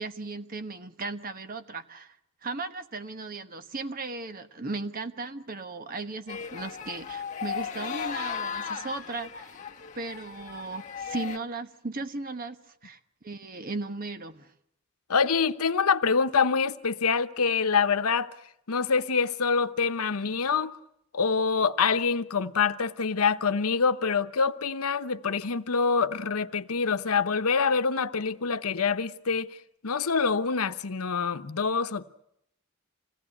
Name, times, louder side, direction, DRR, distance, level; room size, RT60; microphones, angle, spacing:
voice 1, 0.0-2.2 2.4-9.5 9.9-14.5, right 3 dB, 40° right, 1.1 m, -36 dB
sound 1, 6.3-11.4, left 6 dB, 35° left, 1.3 m, -36 dB
voice 2, 15.1-18.3 18.7-20.8 21.1-29.5 29.8-32.0, left 5 dB, 85° left, 0.9 m, -25 dB
26.0 x 17.5 x 9.8 m
head